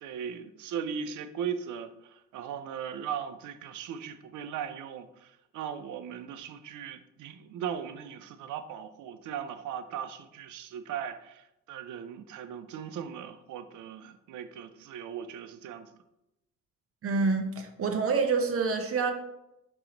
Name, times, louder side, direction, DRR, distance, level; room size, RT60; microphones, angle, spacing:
voice 1, 0.0-15.9, right 8 dB, 75° right, 11 dB, 0.5 m, -38 dB
voice 2, 17.0-19.1, right 4 dB, 50° right, 5 dB, 0.8 m, -27 dB
4.7 x 2.9 x 3.8 m, 0.88 s
cardioid pair, 90°, 30 cm